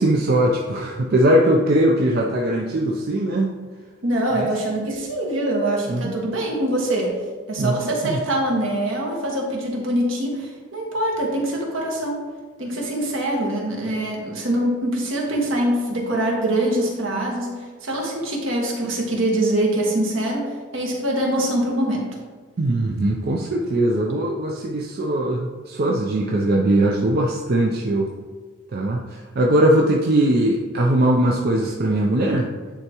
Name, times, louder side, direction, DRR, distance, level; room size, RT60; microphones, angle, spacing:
voice 1, 0.0-3.5 4.4-4.5 5.9-6.1 7.6-7.8 8.0-8.2 22.6-28.1 28.7-32.5, right 1 dB, 50° right, -1 dB, 0.5 m, -20 dB
voice 2, 4.0-7.2 7.5-12.2 12.6-17.5 17.8-22.1, right 1 dB, 70° right, -2 dB, 1.4 m, -24 dB
9.7 x 3.5 x 2.9 m, 1.4 s
head